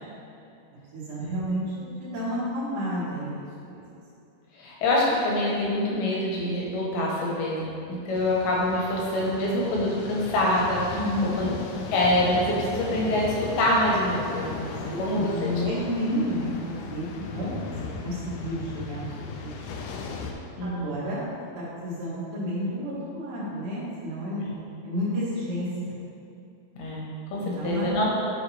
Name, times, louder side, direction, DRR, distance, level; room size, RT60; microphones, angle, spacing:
voice 1, 0.9-3.8 10.9-11.4 14.8-17.7 18.0-19.8 20.6-21.2 21.6-24.4 24.8-26.0 27.4-27.9, equal, 80° right, -11 dB, 3.7 m, -31 dB
voice 2, 4.6-11.0 11.4-11.6 11.9-15.8 20.6-21.0 26.8-27.1 27.3-28.1, left 1 dB, 70° left, -4 dB, 2.7 m, -25 dB
sound 1, 8.1-20.3, left 5 dB, 90° left, 2.1 m, -37 dB
7.5 x 6.5 x 3.3 m, 2.7 s
omnidirectional pair, 4.9 m